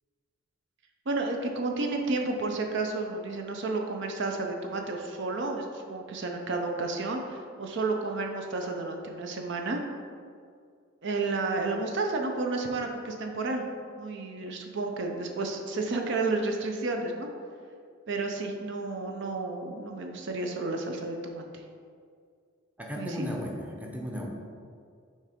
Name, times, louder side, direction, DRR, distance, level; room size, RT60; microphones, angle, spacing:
voice 1, 1.1-9.8 11.0-13.6 13.9-17.3 18.1-21.4 23.0-23.3, right 3 dB, 60° right, 3 dB, 0.6 m, -31 dB
voice 2, 22.8-24.3, equal, 10° right, -1 dB, 0.6 m, -35 dB
6.4 x 3.3 x 5.0 m, 2.2 s
head